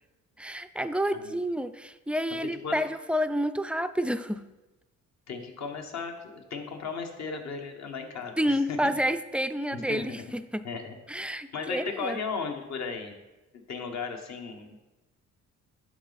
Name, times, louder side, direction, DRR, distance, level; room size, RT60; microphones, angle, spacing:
voice 1, 0.4-4.4 8.4-10.7 11.1-12.2, equal, 5° right, 11 dB, 0.3 m, -29 dB
voice 2, 5.3-8.9 9.7-10.2 10.6-10.9 11.5-13.1 13.7-14.8, left 5 dB, 65° left, 3 dB, 1.3 m, -36 dB
11.0 x 4.1 x 4.1 m, 1.1 s
cardioid pair, 90°, 30 cm